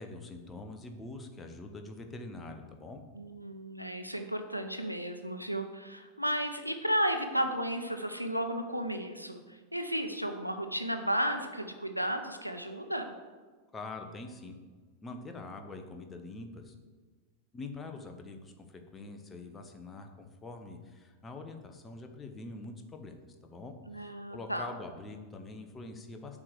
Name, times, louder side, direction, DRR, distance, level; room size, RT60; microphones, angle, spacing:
voice 1, 0.0-3.0 13.7-14.5 15.0-16.7 17.5-23.7 24.0-26.4, left 3 dB, 15° left, 4 dB, 1.0 m, -44 dB
voice 2, 3.1-13.1 23.9-24.7, equal, 90° left, 7 dB, 0.6 m, -33 dB
7.3 x 4.8 x 6.6 m, 1.4 s
figure-of-eight pair, 90°, 0 cm